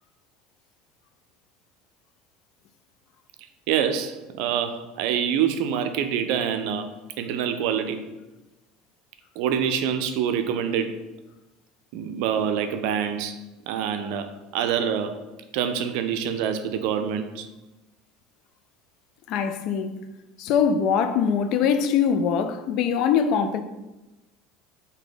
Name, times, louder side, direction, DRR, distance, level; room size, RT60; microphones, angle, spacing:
voice 1, 3.7-6.9 7.2-8.0 9.4-11.0 11.9-13.4 13.7-15.2 15.5-17.5, right 8 dB, 65° right, 0.4 m, -26 dB
voice 2, 19.3-20.0 20.4-23.6, left 7 dB, 55° left, 0.4 m, -22 dB
3.8 x 2.8 x 4.8 m
hypercardioid pair, 70°, 0 cm